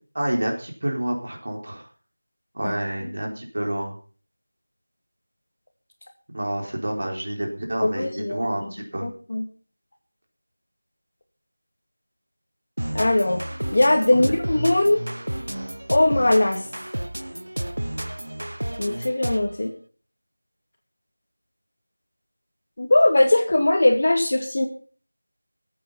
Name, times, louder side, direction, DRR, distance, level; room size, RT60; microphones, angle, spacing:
voice 1, 0.1-1.8 2.5-4.0 6.3-9.1 14.1-14.3, right 1 dB, 50° right, 1 dB, 4.0 m, -28 dB
voice 2, 7.8-8.7 9.0-9.4 12.9-13.4 13.7-15.0 15.9-16.6 18.8-19.7 22.8-24.7, left 1 dB, 40° left, 4 dB, 2.3 m, -20 dB
sound 1, 12.8-19.6, right 1 dB, 75° right, 0.9 m, -31 dB
15.0 x 8.7 x 5.7 m, 0.41 s
figure-of-eight pair, 175°, 0 cm